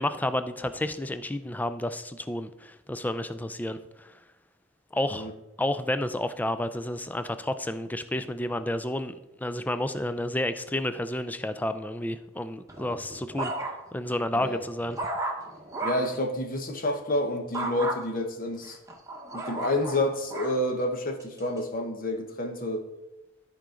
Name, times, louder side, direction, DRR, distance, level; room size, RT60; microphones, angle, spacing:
voice 1, 0.0-4.2 4.9-5.3 5.6-13.5 13.9-15.0, left 1 dB, 10° left, 11 dB, 0.3 m, -31 dB
sound 1, 12.7-14.0 14.5-16.2 17.5-18.0 18.6-20.6 21.2-21.6, right 2 dB, 15° right, 1.1 m, -34 dB
voice 2, 15.8-18.8 19.3-22.9, left 1 dB, 40° left, 5 dB, 1.0 m, -29 dB
13.5 x 4.9 x 3.8 m, 0.99 s
head